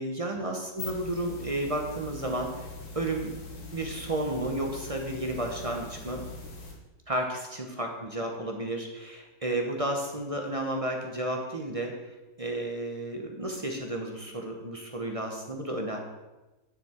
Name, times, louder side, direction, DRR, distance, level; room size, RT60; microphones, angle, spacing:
voice 1, 0.0-2.7 2.9-3.3 3.7-6.2 7.1-11.9 12.4-16.0, right 1 dB, 25° right, 2 dB, 0.7 m, -32 dB
sound 1, 0.6-6.7, left 3 dB, 85° left, 2.2 m, -42 dB
9.6 x 7.0 x 4.4 m, 1.1 s
omnidirectional pair, 1.9 m